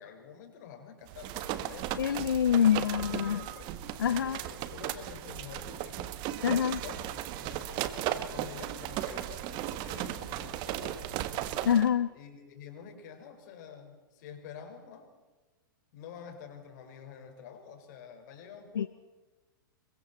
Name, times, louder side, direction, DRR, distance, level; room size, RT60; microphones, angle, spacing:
voice 1, 0.0-2.1 2.6-3.7 4.0-6.1 6.8-7.9 8.3-11.2 12.1-15.1 15.9-18.9, left 7 dB, 55° left, 5 dB, 4.9 m, -48 dB
sound 1, 1.1-11.9, right 12 dB, 40° right, 1.6 m, -36 dB
voice 2, 2.0-3.5 4.0-4.4 6.4-6.8 11.7-12.1 18.8-18.9, left 8 dB, 80° left, 16 dB, 0.6 m, -26 dB
28.0 x 23.5 x 4.3 m, 1.2 s
hypercardioid pair, 110°, 11 cm